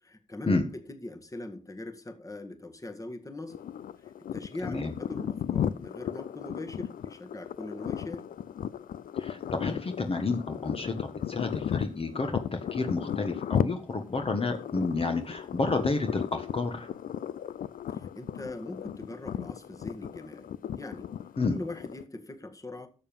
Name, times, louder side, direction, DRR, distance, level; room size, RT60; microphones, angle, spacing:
voice 1, 0.0-3.6 4.0-8.3 17.9-20.5 20.8-21.1 21.5-22.9, left 2 dB, 25° left, 7 dB, 1.8 m, -41 dB
sound 1, 3.5-22.0, left 9 dB, 85° left, 0.5 m, -35 dB
voice 2, 4.6-4.9 9.2-16.9 21.4-21.6, left 3 dB, 45° left, 5 dB, 1.5 m, -30 dB
12.5 x 7.4 x 5.4 m, 0.38 s
cardioid pair, 75°, 14 cm